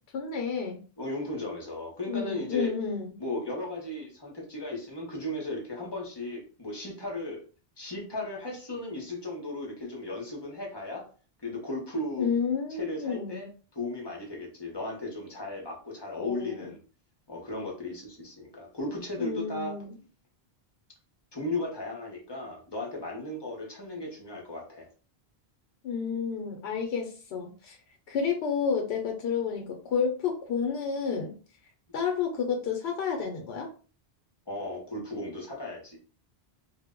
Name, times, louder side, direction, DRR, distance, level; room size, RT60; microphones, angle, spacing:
voice 1, 0.1-0.8 2.1-3.1 12.2-13.5 16.2-16.7 19.2-19.9 25.8-27.8 28.1-31.4 31.9-33.7, left 6 dB, 85° left, 3 dB, 0.8 m, -30 dB
voice 2, 1.0-2.7 3.2-7.4 7.8-11.0 11.4-12.3 12.8-13.5 13.7-16.8 17.3-19.8 21.3-24.9 34.5-36.0, left 1 dB, 30° left, -1 dB, 0.7 m, -36 dB
2.1 x 2.0 x 3.5 m, 0.38 s
omnidirectional pair, 1.1 m